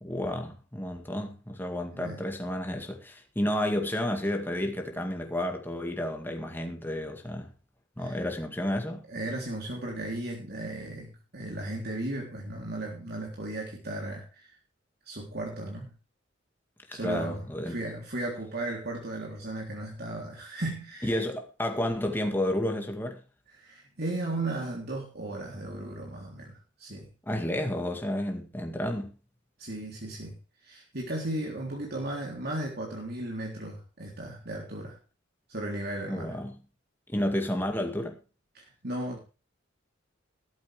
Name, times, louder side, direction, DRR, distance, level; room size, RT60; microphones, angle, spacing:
voice 1, 0.0-7.5 8.0-9.1 16.9-17.8 21.0-23.2 27.3-29.1 36.1-36.6 37.1-38.2, left 1 dB, 10° left, 2.1 m, -31 dB
voice 2, 9.1-14.5 15.1-15.9 16.9-21.2 23.6-27.1 29.6-30.3 30.6-35.0 35.5-36.4 38.6-39.2, right 1 dB, 55° right, 3.4 m, -36 dB
13.5 x 13.0 x 3.5 m
head